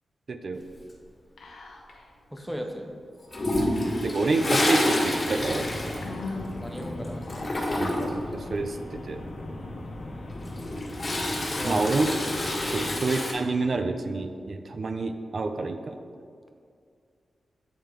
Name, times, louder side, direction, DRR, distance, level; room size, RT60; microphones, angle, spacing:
voice 1, 0.3-0.6 4.0-5.7 7.8-9.2 11.6-12.1 12.6-16.0, right 3 dB, 45° right, 7 dB, 0.4 m, -28 dB
Whispering, 1.4-2.1 2.4-2.5 3.6-4.5 5.1-5.2 6.0-7.2, left 3 dB, 90° left, 0.8 m, -40 dB
voice 2, 2.3-2.9 6.6-7.3 11.5-11.8 12.8-12.9, equal, 5° right, 3 dB, 0.6 m, -37 dB
Toilet flush, 3.3-6.8 7.0-8.2 10.3-13.3, left 1 dB, 35° left, 1.7 m, -28 dB
sound 1, 5.1-13.0, left 1 dB, 65° left, 1.1 m, -39 dB
8.9 x 3.4 x 4.4 m, 2.2 s
wide cardioid pair, 140°, 0 cm